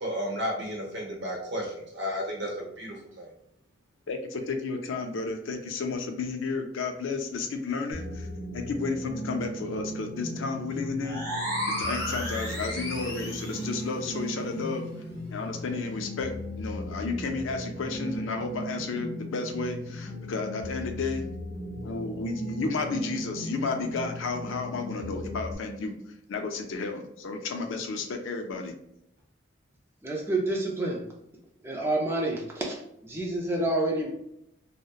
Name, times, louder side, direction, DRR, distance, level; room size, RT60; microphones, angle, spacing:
voice 1, 0.0-3.3, equal, 60° right, -2 dB, 0.8 m, -33 dB
voice 2, 4.1-8.3 8.5-11.2 11.8-14.8 15.3-21.2 21.8-26.0 26.3-28.7, left 4 dB, 75° left, 5 dB, 0.4 m, -32 dB
sound 1, 7.9-25.5, equal, 55° left, 1.2 m, -37 dB
sound 2, 11.0-13.7, equal, 15° left, 1.3 m, -33 dB
voice 3, 30.0-31.0 31.6-34.1, right 2 dB, 10° right, -1 dB, 0.4 m, -28 dB
2.8 x 2.0 x 2.3 m, 0.77 s
head